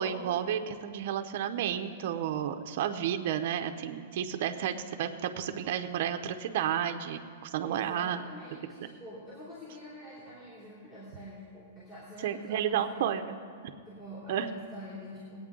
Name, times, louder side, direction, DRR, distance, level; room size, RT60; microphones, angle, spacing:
voice 1, 0.0-8.3 12.2-13.4 14.3-14.5, right 9 dB, 50° right, 6 dB, 0.6 m, -31 dB
voice 2, 7.6-13.2 13.9-15.4, equal, 25° left, -9 dB, 2.6 m, -46 dB
19.5 x 8.7 x 3.7 m, 2.2 s
supercardioid pair, 165°, 0 cm